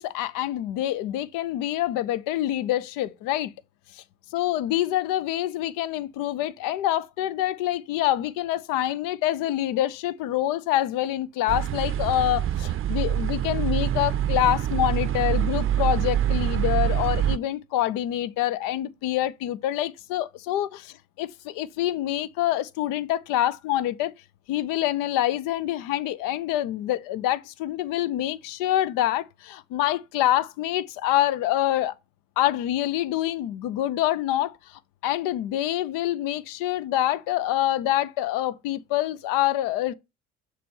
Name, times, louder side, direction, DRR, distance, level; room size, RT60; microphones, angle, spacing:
voice 1, 0.0-3.5 4.3-24.1 24.5-31.9 32.4-39.9, left 13 dB, 65° left, 0.6 m, -26 dB
sound 1, 11.5-17.4, right 11 dB, 35° right, 0.5 m, -25 dB
6.7 x 3.1 x 5.4 m
hypercardioid pair, 55°, 35 cm